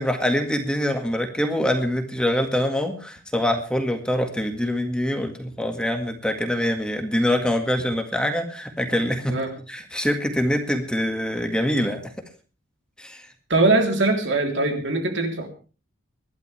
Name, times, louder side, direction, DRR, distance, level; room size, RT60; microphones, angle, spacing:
voice 1, 0.0-9.4 9.7-12.0 13.0-13.3, equal, 5° left, 5 dB, 1.9 m, -24 dB
voice 2, 13.5-15.5, right 2 dB, 60° right, 3 dB, 3.4 m, -21 dB
25.0 x 12.0 x 3.4 m, 0.35 s
head